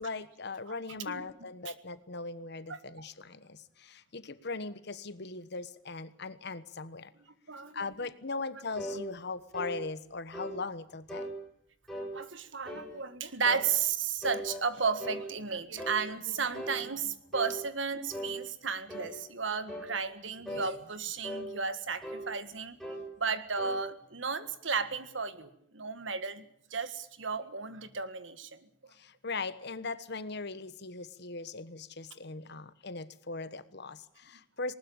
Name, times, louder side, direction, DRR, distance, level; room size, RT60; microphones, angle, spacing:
voice 1, 0.0-7.1 7.7-11.3 29.0-34.7, left 3 dB, 60° left, 14 dB, 1.3 m, -39 dB
voice 2, 7.5-7.9 8.4-8.5 12.1-22.8 23.2-26.4 26.7-28.7, right 5 dB, 80° right, 12 dB, 1.7 m, -34 dB
sound 1, 8.8-9.0 9.5-9.8 10.3-10.6 11.1-11.3 11.9-12.1 12.7-12.9 13.4-13.7 14.2-15.2 15.8-16.0 16.5-16.8 17.3-17.6 18.1-18.4 18.9-19.1 19.7-19.9 20.5-20.7 21.2-21.5 22.0-22.3 22.8-23.0 23.6-23.8, equal, ahead, 7.8 m, -38 dB
19.5 x 19.5 x 8.8 m, 0.68 s
head